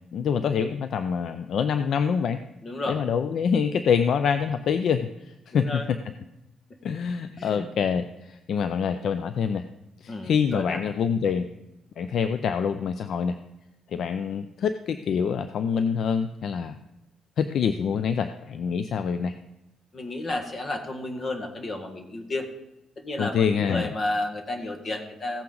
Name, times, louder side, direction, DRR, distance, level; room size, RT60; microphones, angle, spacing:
voice 1, 0.1-2.4 2.9-6.0 6.8-9.6 10.0-11.5 12.0-13.4 13.9-16.7 17.4-19.3 23.2-23.9, left 7 dB, 65° left, 10 dB, 0.5 m, -26 dB
voice 2, 2.6-3.0 5.5-5.9 7.3-7.7 10.1-10.8 19.9-22.5 23.0-25.4, left 2 dB, 45° left, 5 dB, 1.7 m, -32 dB
15.5 x 8.5 x 3.9 m, 0.92 s
cardioid pair, 90°, 0 cm